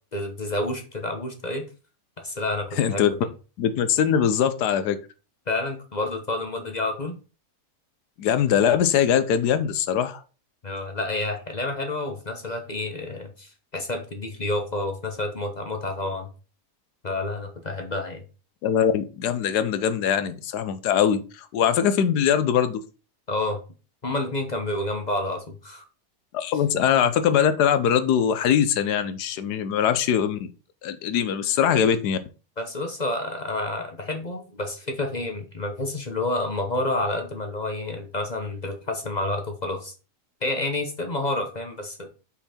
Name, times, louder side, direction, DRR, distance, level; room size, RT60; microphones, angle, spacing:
voice 1, 0.1-1.7 2.2-3.2 5.5-7.2 10.6-16.3 17.0-18.2 23.3-23.6 24.0-25.8 32.6-39.9 40.4-42.1, left 2 dB, 35° left, 5 dB, 0.8 m, -29 dB
voice 2, 2.8-3.1 3.6-5.0 8.2-10.2 18.6-22.8 26.3-30.5 30.8-32.2, left 8 dB, 80° left, 11 dB, 1.2 m, -22 dB
5.8 x 4.2 x 4.2 m, 0.34 s
omnidirectional pair, 1.7 m